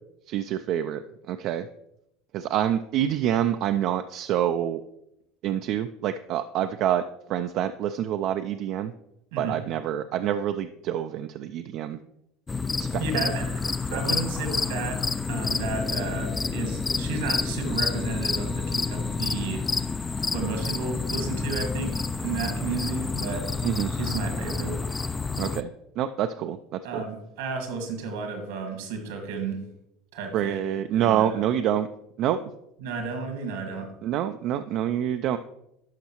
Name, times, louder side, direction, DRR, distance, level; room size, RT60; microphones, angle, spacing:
voice 1, 0.3-1.0 1.3-1.7 2.3-4.8 5.4-8.9 9.4-12.0 12.8-13.3 13.9-14.0 23.6-23.9 25.4-27.0 30.3-31.9 32.2-32.4 34.0-35.4, right 10 dB, 60° right, 8 dB, 0.3 m, -27 dB
sound 1, 12.5-25.6, left 4 dB, 20° left, 0.3 m, -29 dB
voice 2, 13.0-13.6 13.9-19.6 20.3-23.5 23.9-24.8 26.8-29.6 30.1-30.6 31.0-31.5 32.8-33.9, right 4 dB, 80° right, 4 dB, 1.6 m, -33 dB
11.5 x 5.3 x 3.0 m, 0.83 s
hypercardioid pair, 85°, 0 cm